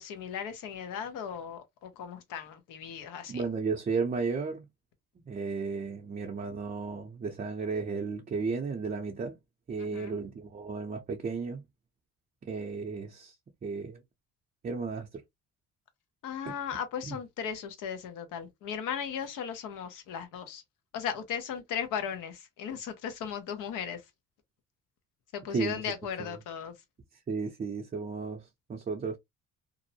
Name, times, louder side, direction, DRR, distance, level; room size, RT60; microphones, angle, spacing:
voice 1, 0.0-3.4 9.8-10.2 16.2-20.6 20.9-24.0 25.3-26.7, left 8 dB, 80° left, 0.8 m, -37 dB
voice 2, 3.3-4.6 5.3-9.4 9.7-11.6 12.4-13.3 13.6-14.0 14.6-15.2 16.5-16.6 17.1-17.2 25.5-25.8 26.2-26.3 27.3-29.2, right 4 dB, 25° right, 0.5 m, -34 dB
2.5 x 2.0 x 2.7 m
cardioid pair, 90°, 31 cm